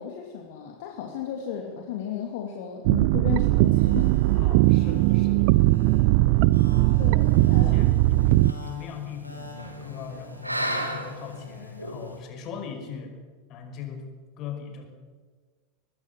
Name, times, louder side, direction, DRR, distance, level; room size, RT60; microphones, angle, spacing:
voice 1, 0.0-4.1 7.0-7.7, left 9 dB, 55° left, 2 dB, 2.7 m, -34 dB
sound 1, 2.9-8.5, right 19 dB, 50° right, 0.6 m, -19 dB
sound 2, 3.5-11.7, left 3 dB, 90° left, 5.2 m, -47 dB
voice 2, 4.3-5.5 7.3-13.1 13.5-14.1 14.4-14.9, left 7 dB, 40° left, 6 dB, 5.3 m, -39 dB
sound 3, 7.2-12.2, equal, 90° right, 2.6 m, -36 dB
23.0 x 20.0 x 7.6 m, 1.5 s
figure-of-eight pair, 85°, 0 cm